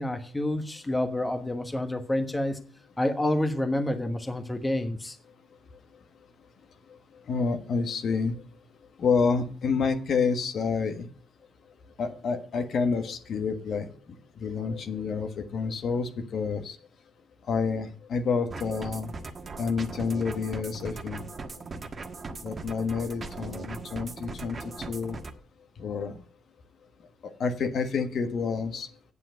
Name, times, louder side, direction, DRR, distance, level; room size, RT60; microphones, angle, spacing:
voice 1, 0.0-2.6 3.0-5.2, left 1 dB, 15° left, 1.3 m, -28 dB
voice 2, 7.3-8.4 9.0-11.1 12.0-13.8 14.4-16.8 17.5-19.1 19.6-21.2 22.4-25.2 25.8-26.1 27.2-28.9, left 5 dB, 60° left, 1.5 m, -28 dB
sound 1, 18.5-25.3, right 3 dB, 35° right, 1.4 m, -39 dB
8.4 x 7.4 x 7.9 m
cardioid pair, 90°, 0 cm